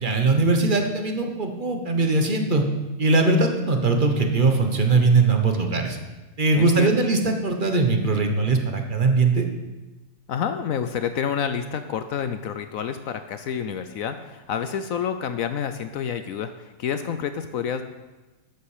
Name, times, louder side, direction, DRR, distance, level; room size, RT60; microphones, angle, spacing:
voice 1, 0.0-2.6 3.0-6.0 6.4-9.4, right 3 dB, 35° right, 4 dB, 1.0 m, -20 dB
voice 2, 6.5-7.0 10.3-17.8, left 8 dB, 70° left, 9 dB, 0.8 m, -28 dB
12.5 x 8.4 x 4.9 m, 1.1 s
omnidirectional pair, 2.0 m